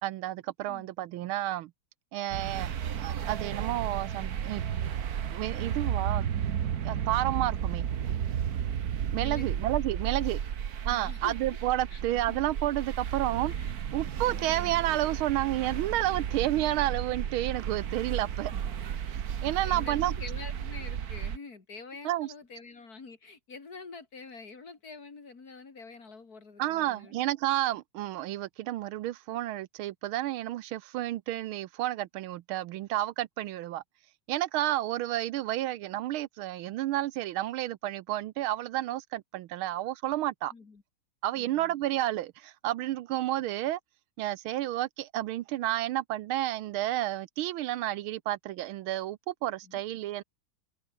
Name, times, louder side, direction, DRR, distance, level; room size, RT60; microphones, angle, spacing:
voice 1, 0.0-1.7 2.1-2.7 3.0-4.6 5.3-6.2 6.8-7.9 9.1-10.4 10.8-13.5 13.9-18.5 19.4-20.1 22.0-22.3 26.6-33.8 34.3-40.5 41.2-43.8 44.2-50.2, right 14 dB, 80° right, 1.5 m, -31 dB
sound 1, 2.3-21.4, right 9 dB, 50° right, 1.4 m, -33 dB
voice 2, 9.1-9.7 10.5-11.3 11.9-12.0 12.3-12.4 13.5-13.7 14.3-14.5 19.5-27.1 40.5-40.8 41.3-41.8 49.6-49.8, left 4 dB, 45° left, 3.1 m, -46 dB
omnidirectional pair, 2.3 m